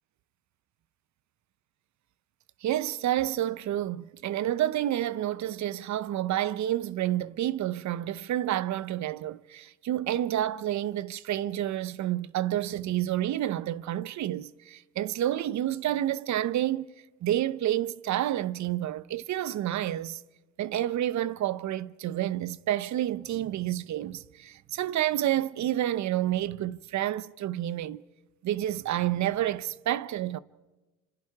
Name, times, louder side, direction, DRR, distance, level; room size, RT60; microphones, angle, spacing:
voice 1, 2.6-16.9 17.2-20.2 20.6-28.0 28.4-30.4, right 12 dB, 70° right, 0.8 m, -29 dB
28.0 x 26.0 x 4.8 m
cardioid pair, 90°, 30 cm